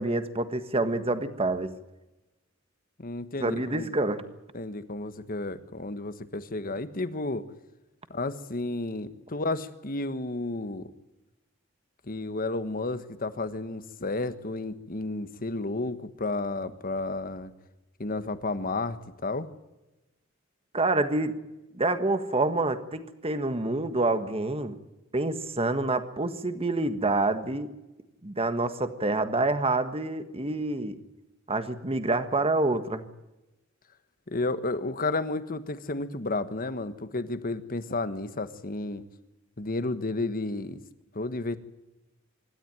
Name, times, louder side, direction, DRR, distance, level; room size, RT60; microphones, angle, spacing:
voice 1, 0.0-1.7 3.4-4.2 20.7-21.3 21.7-24.7 25.1-27.7 28.2-31.0 31.5-33.0, right 2 dB, 30° right, 10 dB, 1.5 m, -27 dB
voice 2, 3.0-3.9 4.5-7.4 8.1-10.9 12.1-17.5 18.0-19.5 34.3-39.0 39.6-40.8 41.1-41.6, left 2 dB, 45° left, 11 dB, 1.4 m, -32 dB
26.0 x 13.0 x 9.0 m, 1.0 s
head